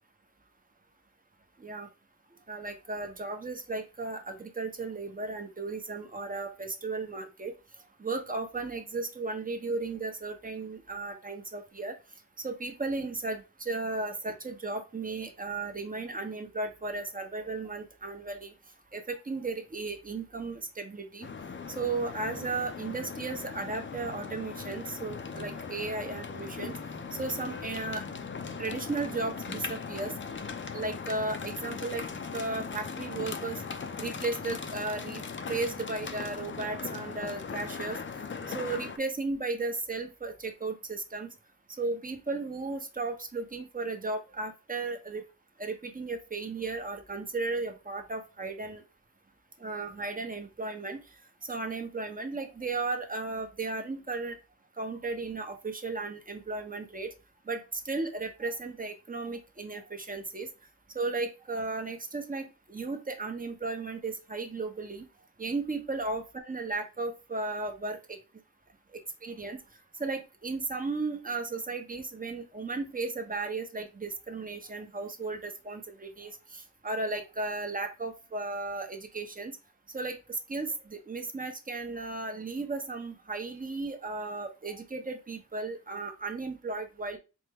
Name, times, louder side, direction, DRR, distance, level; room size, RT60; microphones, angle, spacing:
voice 1, 2.5-7.5 8.0-11.9 12.4-18.5 18.9-21.3 21.7-26.8 27.1-28.0 28.6-30.1 30.7-32.0 32.3-33.6 34.0-38.0 38.5-41.3 41.8-45.2 45.6-48.8 49.6-51.0 51.4-54.4 54.8-57.1 57.5-60.5 60.9-65.0 65.4-68.2 68.9-69.6 70.0-79.5 79.9-87.2, right 3 dB, 25° right, 5 dB, 0.8 m, -35 dB
sound 1, 21.2-39.0, left 5 dB, 40° left, 0.5 m, -39 dB
4.3 x 2.1 x 3.4 m, 0.30 s
wide cardioid pair, 95°, 31 cm